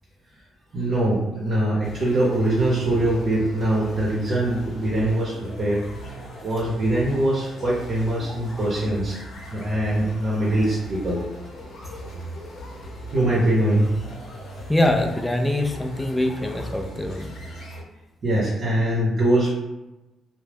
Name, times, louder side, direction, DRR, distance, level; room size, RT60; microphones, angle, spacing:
voice 1, 0.7-5.8 6.4-9.2 9.5-11.2 13.1-13.9 18.2-19.5, right 1 dB, 50° right, -7 dB, 0.7 m, -22 dB
sound 1, 1.8-17.8, equal, 65° left, 0.7 m, -39 dB
voice 2, 14.7-17.4, left 1 dB, 10° left, 2 dB, 0.4 m, -24 dB
2.3 x 2.0 x 3.3 m, 1.0 s
cardioid pair, 90°, 0 cm